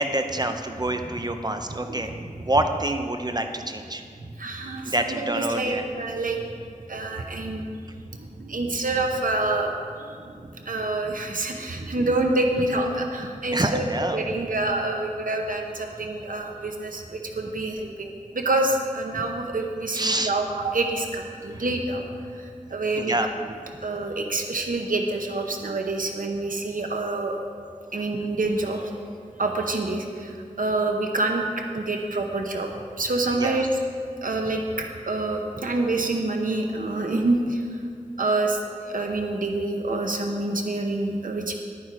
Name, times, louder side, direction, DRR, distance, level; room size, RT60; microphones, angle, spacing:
voice 1, 0.0-2.1 2.4-4.0 4.8-5.8 13.5-14.4 19.9-20.3 23.0-23.3 33.3-33.6, right 1 dB, 30° right, 6 dB, 0.7 m, -26 dB
voice 2, 1.8-2.3 4.2-6.4 6.9-7.7 8.1-13.8 14.1-22.1 22.3-23.2 23.8-27.4 27.9-28.9 29.4-32.7 33.0-33.7 34.2-37.8 38.2-41.5, right 2 dB, 85° right, 2 dB, 0.9 m, -27 dB
10.5 x 9.3 x 4.9 m, 2.2 s
wide cardioid pair, 65°, 14 cm